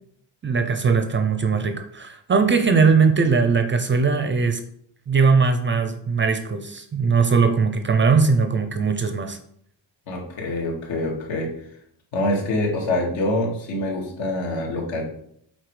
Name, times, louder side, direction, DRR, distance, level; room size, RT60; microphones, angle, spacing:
voice 1, 0.4-4.6 5.1-9.4, right 5 dB, 25° right, 8 dB, 0.5 m, -20 dB
voice 2, 10.1-11.5 12.1-15.0, left 1 dB, 75° left, -1 dB, 2.4 m, -25 dB
7.9 x 4.4 x 4.9 m, 0.67 s
cardioid pair, 170°, 46 cm